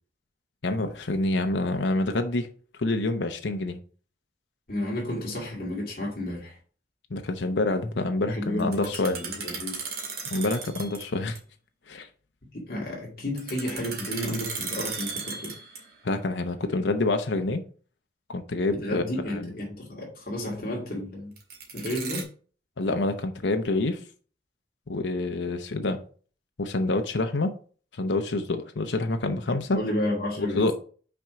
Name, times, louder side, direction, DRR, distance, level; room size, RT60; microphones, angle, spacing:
voice 1, 0.6-2.5 2.8-3.8 7.1-9.2 10.3-11.4 11.9-12.1 16.0-17.6 18.3-19.5 22.8-24.0 24.9-26.0 26.6-27.5 28.0-29.8 30.4-30.7, left 2 dB, 85° left, 0.8 m, -27 dB
voice 2, 4.7-6.6 8.2-9.8 12.5-15.5 18.7-21.3 21.7-22.3 29.7-30.7, left 1 dB, 55° left, 2.1 m, -32 dB
sound 1, 8.6-11.1 11.4-11.5 13.4-16.0 21.4-22.2, right 5 dB, 60° right, 2.0 m, -36 dB
6.0 x 4.4 x 4.9 m
head